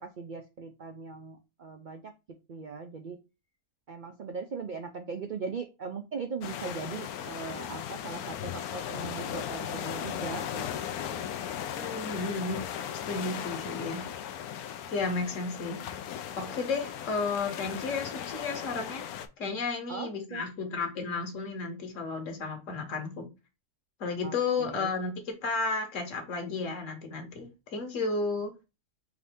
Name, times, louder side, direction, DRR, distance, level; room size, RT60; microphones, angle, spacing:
voice 1, 0.0-2.1 2.5-3.2 3.9-10.7 11.0-11.2 19.9-20.4 24.2-24.9, right 5 dB, 75° right, 5 dB, 0.4 m, -39 dB
sound 1, 6.4-19.3, left 9 dB, 80° left, 1.0 m, -37 dB
voice 2, 11.7-12.6 13.0-14.1 14.9-15.8 16.3-19.0 19.4-23.3 24.0-28.5, left 4 dB, 60° left, 4 dB, 1.4 m, -33 dB
4.8 x 2.6 x 3.4 m, 0.27 s
omnidirectional pair, 1.6 m